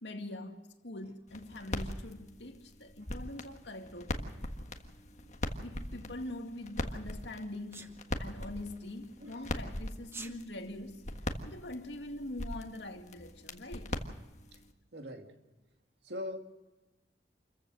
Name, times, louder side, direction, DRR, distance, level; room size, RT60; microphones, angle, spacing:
voice 1, 0.0-4.4 5.6-11.1 11.4-14.0, left 1 dB, 75° left, 2.2 m, -43 dB
sound 1, 1.3-14.7, left 1 dB, 40° left, 1.6 m, -41 dB
Sneeze, 7.7-7.9 10.0-10.4, right 3 dB, 15° right, 1.0 m, -44 dB
voice 2, 14.9-15.3 16.1-16.4, left 1 dB, 70° right, 2.4 m, -40 dB
28.0 x 15.0 x 6.4 m
head